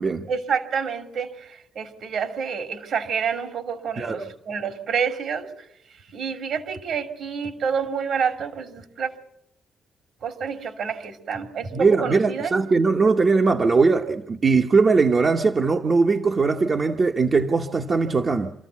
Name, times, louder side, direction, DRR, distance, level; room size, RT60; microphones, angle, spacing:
voice 1, 0.3-5.7 6.1-9.1 10.2-12.5, right 6 dB, 70° right, 7 dB, 2.8 m, -28 dB
voice 2, 11.7-18.5, right 4 dB, 35° right, 3 dB, 1.0 m, -20 dB
26.5 x 14.0 x 8.4 m, 0.78 s
cardioid pair, 90°, 0 cm